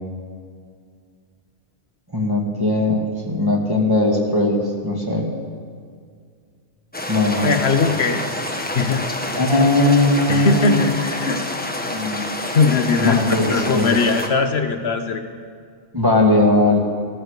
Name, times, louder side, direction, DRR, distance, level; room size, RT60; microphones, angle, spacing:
voice 1, 2.1-3.0 3.2-5.3 7.1-7.6 9.4-11.4 11.9-12.3 13.0-13.9 15.9-16.8, left 2 dB, 20° right, -1 dB, 2.3 m, -19 dB
sound 1, 6.9-14.3, left 1 dB, 10° left, 1.2 m, -28 dB
voice 2, 7.4-8.2 8.7-9.0 10.3-11.4 12.5-13.2 13.5-15.2, left 4 dB, 70° left, 7 dB, 1.2 m, -19 dB
14.5 x 14.5 x 6.7 m, 2.1 s
omnidirectional pair, 1.1 m